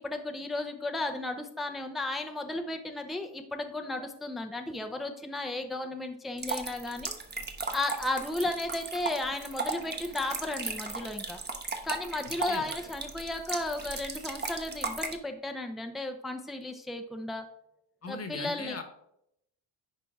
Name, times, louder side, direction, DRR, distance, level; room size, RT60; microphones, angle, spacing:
voice 1, 0.0-7.1 7.7-11.4 11.8-17.5 18.1-18.8, left 2 dB, ahead, 5 dB, 0.7 m, -34 dB
sound 1, 6.4-15.1, right 4 dB, 20° right, 1.1 m, -36 dB
voice 2, 18.0-18.8, left 4 dB, 30° left, 7 dB, 1.3 m, -39 dB
10.5 x 4.4 x 3.6 m, 0.77 s
cardioid pair, 95°, 47 cm